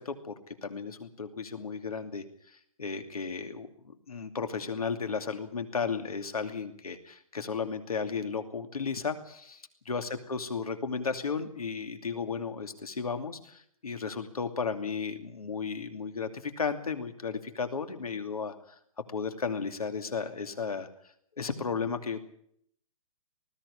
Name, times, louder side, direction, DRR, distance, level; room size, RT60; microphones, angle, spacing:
voice 1, 0.0-2.2 2.8-18.5 19.1-20.9 21.4-22.2, left 5 dB, 90° left, 7 dB, 2.7 m, -34 dB
20.0 x 14.5 x 9.9 m, 0.69 s
hypercardioid pair, 140°, 18 cm